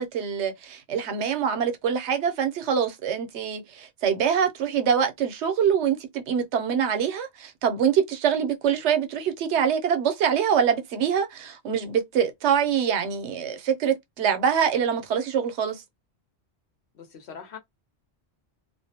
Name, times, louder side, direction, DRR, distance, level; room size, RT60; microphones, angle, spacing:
voice 1, 0.0-15.8, right 7 dB, 80° right, 0.9 m, -24 dB
voice 2, 16.9-17.6, left 6 dB, 70° left, 1.1 m, -42 dB
2.4 x 2.1 x 2.7 m
omnidirectional pair, 1.1 m